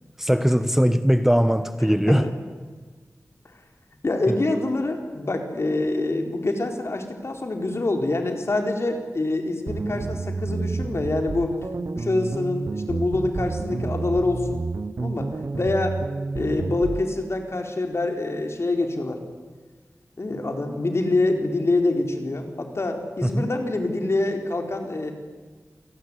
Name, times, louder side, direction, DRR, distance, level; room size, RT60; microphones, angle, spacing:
voice 1, 0.2-2.3 4.3-4.4 23.2-23.5, equal, 5° right, 11 dB, 1.2 m, -20 dB
voice 2, 4.0-11.5 11.9-14.6 15.0-16.0 16.3-19.2 20.2-25.1, left 2 dB, 55° left, 4 dB, 4.3 m, -25 dB
sound 1, 9.7-17.1, right 3 dB, 60° right, 0.8 m, -30 dB
28.5 x 18.5 x 9.9 m, 1.4 s
wide cardioid pair, 80°, 5 cm